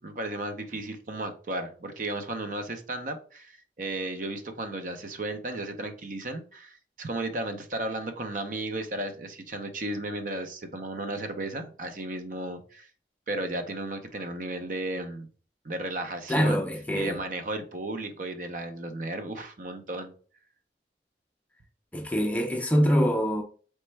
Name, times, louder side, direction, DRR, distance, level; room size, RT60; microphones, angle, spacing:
voice 1, 0.0-12.9 13.3-15.3 15.6-16.6 16.9-20.1, right 2 dB, 45° right, 0.6 m, -34 dB
voice 2, 16.3-17.2 21.9-23.4, equal, 10° left, 0.4 m, -24 dB
4.3 x 3.2 x 3.2 m
head